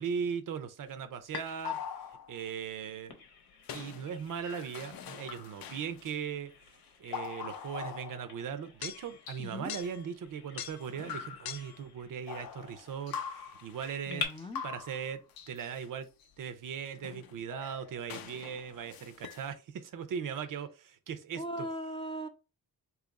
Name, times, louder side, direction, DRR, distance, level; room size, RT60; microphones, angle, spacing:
voice 1, 0.0-1.8 2.3-3.1 3.7-6.5 7.0-14.3 14.6-15.2 15.5-16.1 16.4-21.7, right 7 dB, 60° right, 0.6 m, -39 dB
sound 1, 1.3-2.4 3.7-6.2 6.8-8.5 8.8-10.1 10.6-11.8 12.3-14.0 14.3-15.9 16.2-16.3 16.9-19.5, left 8 dB, 70° left, 0.5 m, -43 dB
Bird vocalization bird call bird song, 3.1-14.3, left 4 dB, 90° left, 1.0 m, -48 dB
voice 2, 14.1-14.6 21.4-22.3, equal, 15° left, 0.4 m, -38 dB
2.8 x 2.4 x 3.9 m
cardioid pair, 95°, 37 cm